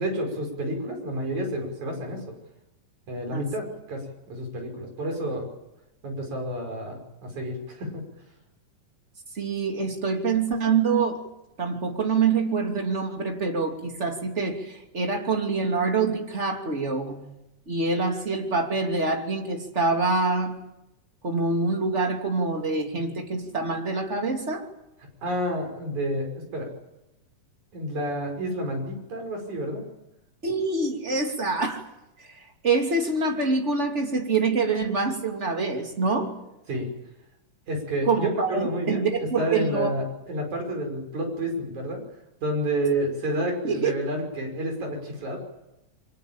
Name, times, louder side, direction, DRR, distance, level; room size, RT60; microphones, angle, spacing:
voice 1, 0.0-2.2 3.1-5.5 6.0-8.0 25.2-26.7 27.7-29.8 36.7-36.9 37.7-39.1 39.4-42.0 42.4-45.4, right 1 dB, 60° right, 3 dB, 7.1 m, -30 dB
voice 2, 9.3-11.2 11.6-17.2 17.7-20.6 21.2-24.7 30.4-31.8 32.2-36.3 38.1-39.9 43.6-43.9, right 4 dB, 20° right, 3 dB, 2.8 m, -25 dB
24.5 x 21.5 x 8.9 m, 0.92 s
omnidirectional pair, 3.9 m